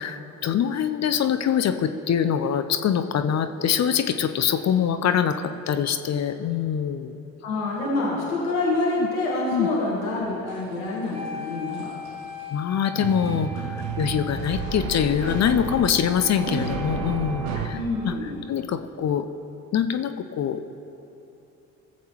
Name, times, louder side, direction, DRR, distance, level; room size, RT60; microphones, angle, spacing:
voice 1, 0.0-7.2 9.0-9.1 9.5-9.7 12.5-18.1 18.5-19.3 19.7-20.7, left 8 dB, 40° left, 9 dB, 0.6 m, -24 dB
voice 2, 7.4-11.9 17.7-18.4, left 2 dB, 85° left, -5 dB, 1.5 m, -26 dB
sound 1, 10.5-10.6 11.7-12.1 13.0-17.7, right 5 dB, 75° right, 0.9 m, -31 dB
Wind instrument woodwind instrument, 11.1-18.1, left 3 dB, 15° right, 1.1 m, -39 dB
18.0 x 7.3 x 3.0 m, 2.9 s
hypercardioid pair, 50°, 42 cm